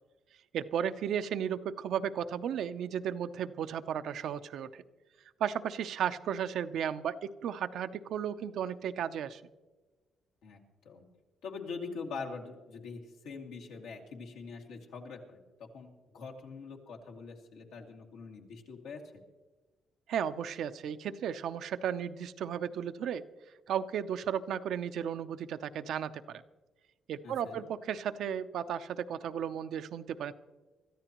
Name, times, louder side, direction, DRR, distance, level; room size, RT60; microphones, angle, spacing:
voice 1, 0.5-4.8 5.4-9.4 20.1-23.2 23.7-26.4 27.1-30.3, right 8 dB, 75° right, 11 dB, 0.6 m, -34 dB
voice 2, 10.4-11.1 11.4-19.2 27.2-27.6, left 4 dB, 90° left, -1 dB, 2.2 m, -44 dB
25.0 x 13.5 x 3.0 m, 1.3 s
cardioid pair, 90°, 0 cm